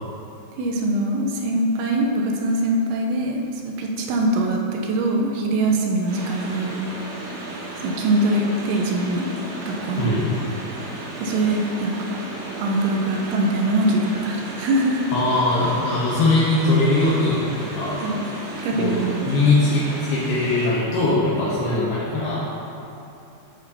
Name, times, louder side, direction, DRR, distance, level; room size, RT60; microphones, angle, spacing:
voice 1, 0.6-6.8 7.8-9.3 9.7-10.1 11.2-12.1 12.6-15.1 18.0-18.3 18.6-19.6, right 1 dB, 80° right, 0 dB, 2.9 m, -23 dB
sound 1, 6.1-20.7, right 2 dB, 60° right, 2.2 m, -34 dB
voice 2, 10.0-10.3 15.1-18.0 18.7-22.5, left 2 dB, 75° left, -8 dB, 2.3 m, -21 dB
11.0 x 8.3 x 2.8 m, 2.8 s
omnidirectional pair, 5.7 m